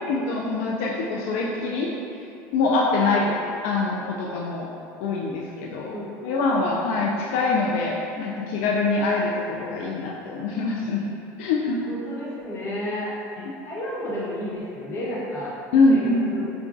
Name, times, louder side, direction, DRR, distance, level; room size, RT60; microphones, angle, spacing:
voice 1, 0.0-1.9 2.5-3.2 3.6-4.7 5.0-5.9 6.2-11.1 11.4-11.8 13.4-13.5 15.7-16.3, left 3 dB, 80° left, -3 dB, 0.3 m, -24 dB
voice 2, 3.0-3.3 5.9-6.3 11.9-13.1 13.6-15.5 15.9-16.0 16.3-16.5, equal, 35° left, -7 dB, 1.1 m, -31 dB
4.8 x 2.3 x 2.5 m, 2.7 s
supercardioid pair, 120°, 7 cm